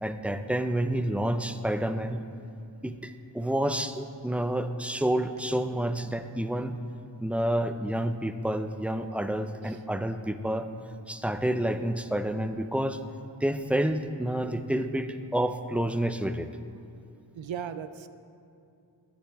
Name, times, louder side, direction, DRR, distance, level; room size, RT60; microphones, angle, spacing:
voice 1, 0.0-2.2 2.8-6.8 7.2-10.7 11.1-13.0 13.4-16.5, right 1 dB, 5° right, 9 dB, 0.5 m, -29 dB
voice 2, 17.3-18.1, right 8 dB, 85° right, 11 dB, 0.6 m, -37 dB
22.0 x 7.3 x 3.5 m, 2.5 s
wide cardioid pair, 40°, 45 cm